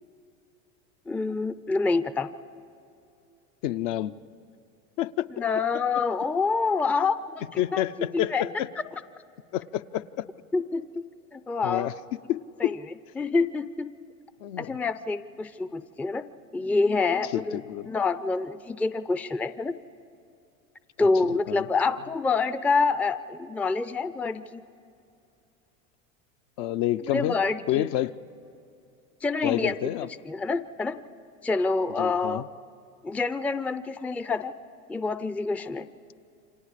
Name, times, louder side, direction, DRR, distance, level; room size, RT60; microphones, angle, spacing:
voice 1, 1.1-2.3 5.4-8.5 10.5-11.0 11.3-11.9 12.6-12.8 13.2-13.9 14.6-16.2 16.5-17.6 17.9-19.7 21.0-24.6 27.1-27.9 29.2-29.7 30.3-31.0 31.4-32.4 33.0-34.5 34.9-35.9, left 4 dB, 5° left, 12 dB, 0.5 m, -27 dB
voice 2, 3.6-4.2 5.0-5.3 7.6-8.7 9.5-10.2 11.6-11.9 12.3-12.8 14.4-14.8 17.3-17.9 21.0-21.1 21.5-21.7 26.6-27.4 27.7-28.2 29.4-30.1 32.0-32.5, left 13 dB, 60° left, 10 dB, 0.7 m, -28 dB
29.0 x 25.5 x 5.0 m, 2.6 s
hypercardioid pair, 95°, 41 cm